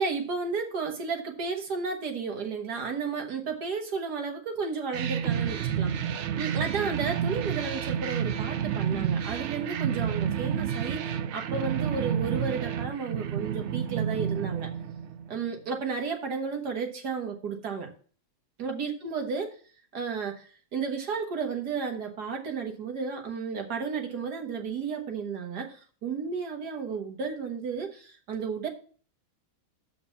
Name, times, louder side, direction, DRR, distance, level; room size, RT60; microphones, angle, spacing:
voice 1, 0.0-6.0 6.4-11.0 11.3-14.7 15.3-17.9 18.6-19.5 19.9-28.7, right 5 dB, 85° right, 3 dB, 2.0 m, -33 dB
sound 1, 4.9-15.5, right 8 dB, 65° right, 0.7 m, -30 dB
7.1 x 5.1 x 7.0 m, 0.42 s
omnidirectional pair, 1.7 m